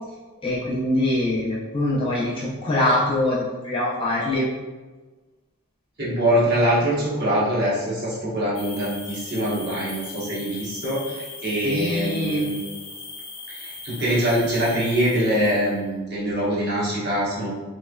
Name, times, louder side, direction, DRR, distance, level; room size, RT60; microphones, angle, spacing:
voice 1, 0.4-4.5 11.6-12.5, left 1 dB, 25° left, -6 dB, 0.5 m, -23 dB
voice 2, 6.0-12.6 13.5-17.5, right 1 dB, 45° right, -7 dB, 1.1 m, -23 dB
sound 1, 8.5-15.8, left 3 dB, 55° left, 0.8 m, -39 dB
3.3 x 3.1 x 2.3 m, 1.3 s
head